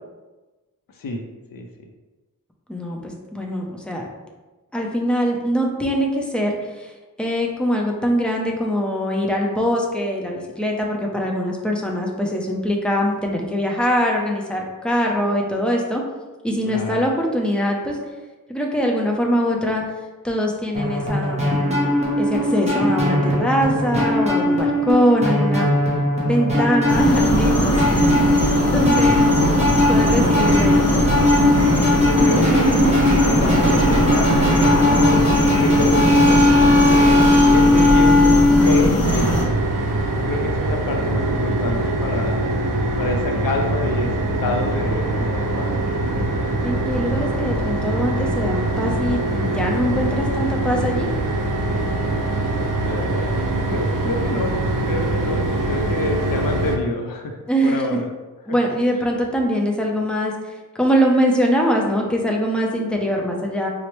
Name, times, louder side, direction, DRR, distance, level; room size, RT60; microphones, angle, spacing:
voice 1, 1.0-1.7 16.6-17.1 29.1-29.6 31.9-35.3 35.6-39.4 40.1-42.4 43.0-45.8 52.9-58.1, left 2 dB, 75° left, 2 dB, 0.5 m, -28 dB
voice 2, 2.7-4.1 4.7-6.9 7.2-16.0 16.4-18.0 18.5-19.8 20.2-21.8 22.2-25.7 26.2-29.3 29.9-31.0 46.6-51.1 57.5-57.8 58.5-63.7, equal, 5° left, -1 dB, 0.5 m, -22 dB
sound 1, 20.7-38.8, left 1 dB, 20° right, 0.9 m, -18 dB
sound 2, 26.9-39.4, right 1 dB, 45° left, 0.8 m, -20 dB
sound 3, 39.0-56.8, right 2 dB, 70° right, 0.5 m, -23 dB
4.5 x 2.0 x 3.0 m, 1.2 s
wide cardioid pair, 70°, 34 cm